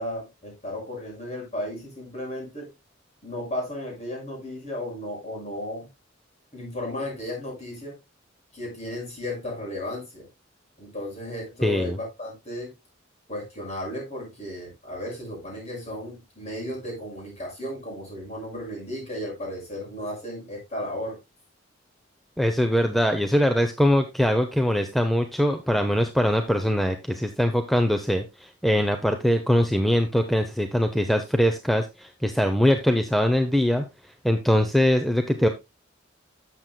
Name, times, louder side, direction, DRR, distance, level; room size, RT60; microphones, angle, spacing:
voice 1, 0.0-2.7 3.2-5.9 6.5-8.0 8.5-10.3 10.8-12.7 13.3-21.2, left 1 dB, 35° left, -1 dB, 6.3 m, -34 dB
voice 2, 11.6-12.0 22.4-33.8 34.2-35.5, equal, ahead, 6 dB, 0.6 m, -22 dB
12.0 x 7.6 x 2.2 m, 0.23 s
head